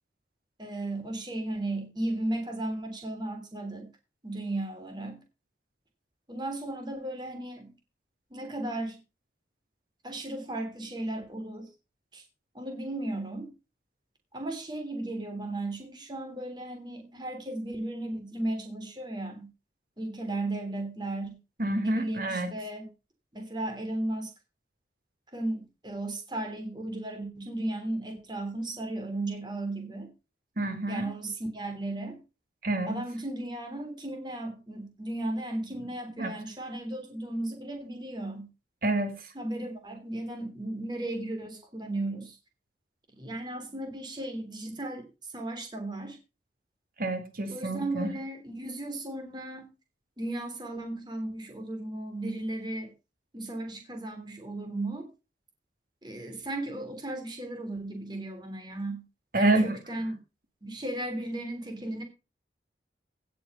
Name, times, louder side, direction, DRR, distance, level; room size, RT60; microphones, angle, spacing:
voice 1, 0.6-3.9 4.2-5.2 6.3-7.7 8.3-9.0 10.0-11.7 12.1-12.2 12.5-13.5 14.3-19.5 20.0-21.4 21.8-22.8 23.3-24.3 25.3-30.1 30.9-32.2 32.9-38.5 39.3-42.4 43.2-46.2 47.5-49.7 50.2-52.9 53.3-55.0 56.0-59.0 59.3-60.2 60.6-62.0, right 1 dB, 25° right, 5 dB, 3.3 m, -35 dB
voice 2, 21.6-22.5 30.6-31.1 32.6-33.0 36.2-36.3 38.8-39.3 47.0-48.1 59.3-59.8, right 2 dB, 50° right, 7 dB, 2.4 m, -28 dB
16.5 x 7.0 x 5.5 m, 0.30 s
head